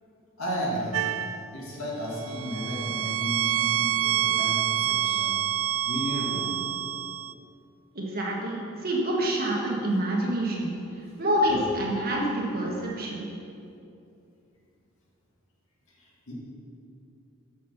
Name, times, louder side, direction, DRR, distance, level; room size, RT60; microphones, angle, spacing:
voice 1, 0.4-1.0 1.5-5.4 5.9-6.6 10.2-10.3 11.0-11.6 15.9-16.3, equal, 85° left, -4 dB, 2.1 m, -34 dB
sound 1, 0.9-1.5 2.2-7.3, right 12 dB, 75° right, 0.3 m, -27 dB
voice 2, 7.9-10.7 11.2-13.3, right 1 dB, 45° right, -3 dB, 1.5 m, -27 dB
6.6 x 6.4 x 5.8 m, 2.7 s
head